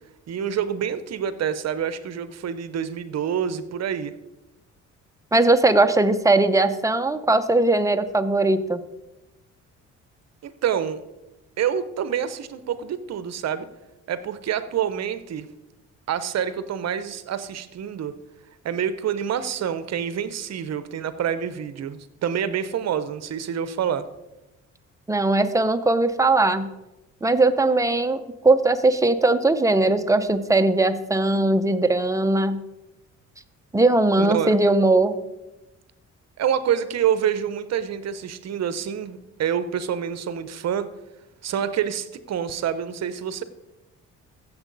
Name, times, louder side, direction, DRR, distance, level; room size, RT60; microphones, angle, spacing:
voice 1, 0.3-4.1 10.4-11.0 11.6-13.7 14.1-15.5 16.1-18.1 18.6-24.1 34.2-34.5 36.4-40.9 41.4-43.4, right 8 dB, 60° right, 13 dB, 0.8 m, -27 dB
voice 2, 5.3-8.8 25.1-26.7 27.2-32.6 33.7-35.1, right 2 dB, 10° right, 8 dB, 0.7 m, -19 dB
15.0 x 7.3 x 4.0 m, 0.99 s
cardioid pair, 90°, 30 cm